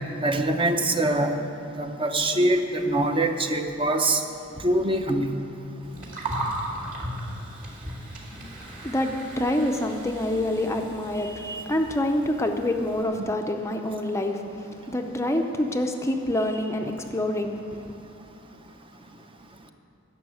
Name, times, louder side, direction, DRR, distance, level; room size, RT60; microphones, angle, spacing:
voice 1, 0.2-1.4 1.8-4.2 4.6-5.4 13.2-13.3, right 1 dB, 25° right, 5 dB, 0.7 m, -24 dB
Gurgling, 5.8-13.0, right 1 dB, 40° right, 2.3 m, -37 dB
voice 2, 8.6-17.9, left 1 dB, 15° left, 4 dB, 0.6 m, -27 dB
11.0 x 6.9 x 9.5 m, 2.6 s
head